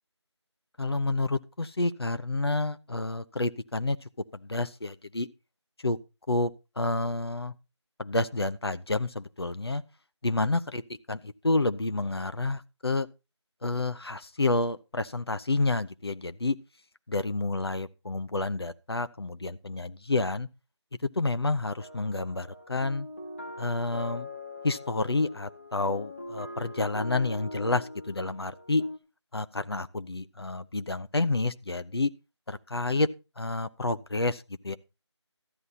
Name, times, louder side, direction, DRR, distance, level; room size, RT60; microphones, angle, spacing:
voice 1, 0.8-4.0 4.3-5.3 5.8-6.0 6.3-7.5 8.0-9.8 10.2-10.8 11.1-13.1 13.6-16.6 17.1-20.5 21.2-23.1 23.6-24.3 24.6-28.8 29.3-32.1 32.5-33.1 33.4-34.8, left 2 dB, 60° left, 0.8 m, -29 dB
sound 1, 21.8-29.0, left 2 dB, 30° left, 0.8 m, -42 dB
13.0 x 9.6 x 4.1 m
figure-of-eight pair, 175°, 15 cm